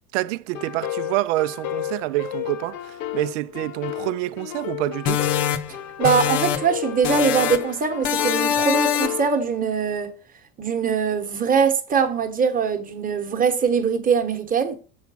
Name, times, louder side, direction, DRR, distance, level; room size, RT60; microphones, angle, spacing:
voice 1, 0.1-5.2, right 18 dB, 65° right, 0.5 m, -27 dB
sound 1, 0.5-9.3, left 12 dB, 80° left, 0.9 m, -32 dB
sound 2, 5.1-6.8 7.0-7.7 8.0-9.3, left 9 dB, 50° left, 0.9 m, -24 dB
voice 2, 6.0-10.1 10.6-14.8, right 6 dB, 20° right, 1.1 m, -22 dB
7.3 x 4.5 x 5.6 m
supercardioid pair, 125°, 39 cm